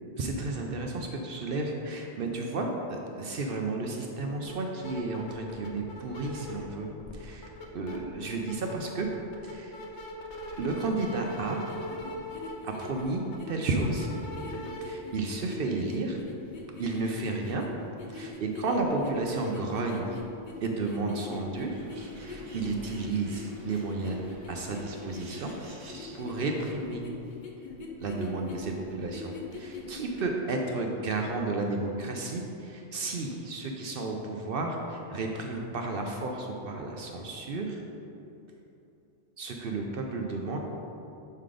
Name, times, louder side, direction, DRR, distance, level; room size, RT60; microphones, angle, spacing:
voice 1, 0.2-9.1 9.4-9.8 10.6-11.6 12.6-14.1 14.8-16.2 16.8-17.7 18.1-20.2 20.6-21.7 22.2-24.2 24.5-25.5 25.8-27.0 28.0-37.8 39.4-40.6, right 3 dB, 60° right, 1 dB, 0.7 m, -32 dB
sound 1, 4.4-4.5 4.8-6.7 7.0-8.0 8.3-14.8, equal, 70° left, 1.0 m, -40 dB
sound 2, 11.7-30.2, left 3 dB, 50° left, 0.7 m, -43 dB
Bird, 21.6-26.7, right 1 dB, 85° right, 1.3 m, -49 dB
6.6 x 3.8 x 4.9 m, 2.8 s
omnidirectional pair, 1.3 m